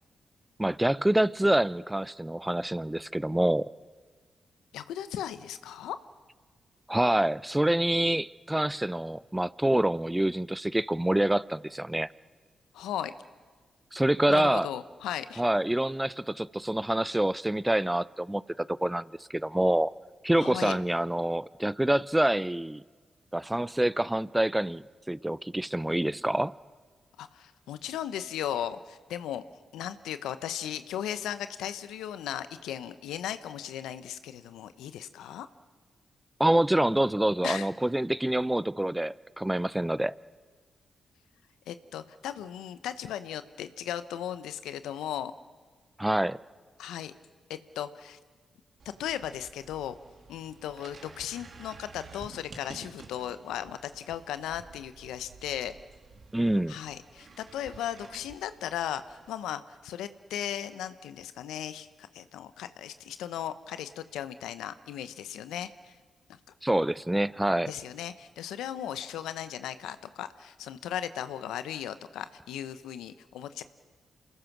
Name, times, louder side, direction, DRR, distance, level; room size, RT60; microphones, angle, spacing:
voice 1, 0.6-3.7 6.9-12.1 13.9-14.7 15.4-19.9 20.2-22.8 23.3-26.5 36.4-40.1 46.0-46.4 56.3-56.8 66.6-67.7, right 1 dB, 10° right, 19 dB, 0.6 m, -26 dB
voice 2, 4.7-6.0 12.7-13.1 14.3-15.4 20.3-20.8 27.2-29.4 29.7-35.5 37.4-37.7 41.7-45.3 46.8-47.1 47.5-48.2 49.0-49.9 50.3-55.8 56.7-66.0 67.7-73.6, left 10 dB, 85° left, 12 dB, 0.8 m, -36 dB
sound 1, 48.8-59.3, right 4 dB, 60° right, 2.3 m, -51 dB
27.5 x 20.0 x 6.1 m, 1.5 s
hypercardioid pair, 40°, 0 cm